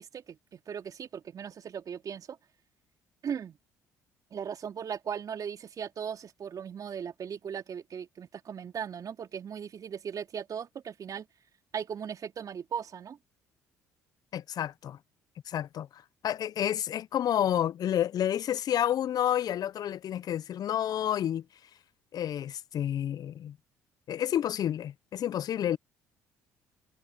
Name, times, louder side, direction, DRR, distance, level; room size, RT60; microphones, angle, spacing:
voice 1, 0.0-2.4 3.2-3.6 4.3-11.3 11.7-13.2, right 7 dB, 50° right, 3.2 m, -38 dB
voice 2, 14.3-15.0 15.5-21.4 22.1-23.6 24.1-25.8, left 10 dB, 55° left, 0.8 m, -30 dB
hypercardioid pair, 55°, 8 cm